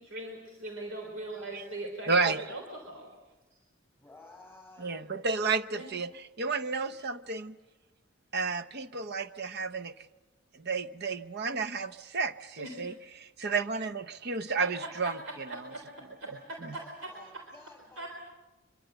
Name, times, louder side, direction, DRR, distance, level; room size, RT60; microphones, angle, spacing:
voice 1, 0.0-3.1 5.7-5.9 12.6-12.9 14.6-15.8 16.2-17.4 18.0-18.1, right 1 dB, 90° right, 3.9 m, -41 dB
voice 2, 2.1-2.4 4.8-7.6 8.3-9.9 10.5-15.2 15.5-15.6 16.7-16.8, right 4 dB, 55° right, 0.8 m, -32 dB
voice 3, 4.0-5.1 16.7-18.1, left 2 dB, 10° left, 8.0 m, -53 dB
25.0 x 23.5 x 7.9 m
head